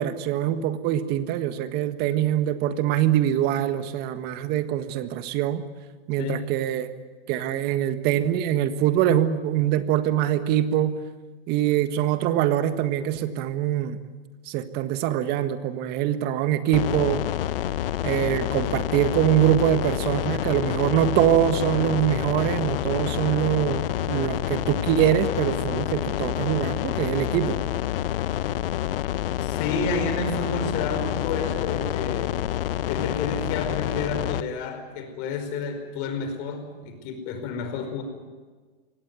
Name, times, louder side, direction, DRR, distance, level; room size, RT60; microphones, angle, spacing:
voice 1, 0.0-5.6 6.1-6.9 7.3-11.0 11.5-14.0 14.5-17.2 18.0-27.6, right 11 dB, 30° right, 10 dB, 1.6 m, -24 dB
voice 2, 6.2-6.6 29.4-32.3 32.9-38.0, left 4 dB, 40° left, 6 dB, 5.0 m, -30 dB
sound 1, 16.7-34.4, left 12 dB, 65° left, 0.8 m, -28 dB
24.0 x 17.5 x 9.5 m, 1.4 s
hypercardioid pair, 140°, 31 cm